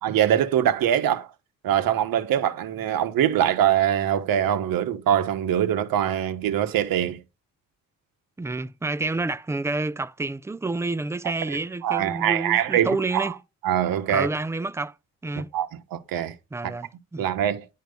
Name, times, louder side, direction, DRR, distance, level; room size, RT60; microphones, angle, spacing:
voice 1, 0.0-1.3 1.6-7.2 11.8-13.3 13.6-14.3 15.5-16.3 17.2-17.7, right 10 dB, 85° right, 1.3 m, -23 dB
voice 2, 8.4-13.3 14.1-14.9 15.2-15.5 16.5-17.3, right 3 dB, 10° right, 0.4 m, -29 dB
10.5 x 4.6 x 5.2 m
cardioid pair, 100°, 34 cm